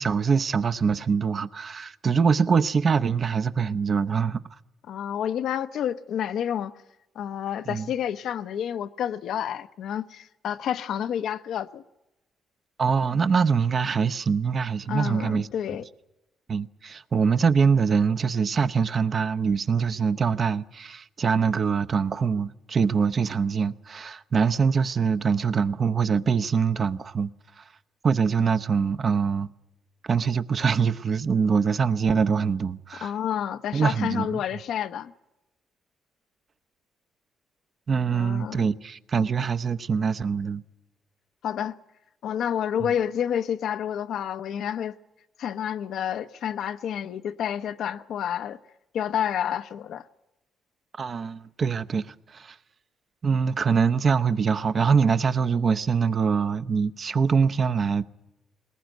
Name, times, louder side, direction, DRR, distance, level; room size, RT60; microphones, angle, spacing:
voice 1, 0.0-4.4 7.7-7.9 12.8-15.5 16.5-27.3 27.6-27.7 28.0-29.5 30.0-33.1 33.7-34.4 37.9-40.6 51.0-52.6 53.2-58.0, right 6 dB, 45° right, 0.8 m, -24 dB
voice 2, 4.9-6.8 7.1-11.8 14.9-15.8 33.0-35.1 38.1-38.7 41.4-41.7 42.2-45.0 45.4-48.6 48.9-50.1, left 9 dB, 75° left, 0.8 m, -29 dB
20.5 x 19.5 x 9.2 m
cardioid pair, 90°, 0 cm